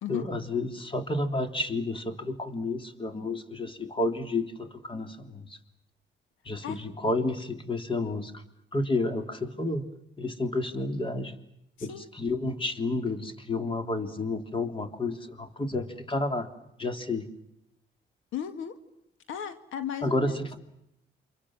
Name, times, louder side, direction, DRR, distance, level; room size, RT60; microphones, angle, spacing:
voice 1, 0.1-5.6 6.4-8.4 8.7-9.9 10.2-11.4 11.8-16.5 16.8-17.3 20.0-20.6, left 2 dB, 25° left, 7 dB, 3.4 m, -31 dB
voice 2, 11.8-12.1 18.3-18.8 19.3-20.4, left 9 dB, 85° left, 10 dB, 1.8 m, -36 dB
29.0 x 26.0 x 7.5 m, 0.81 s
cardioid pair, 90°, 20 cm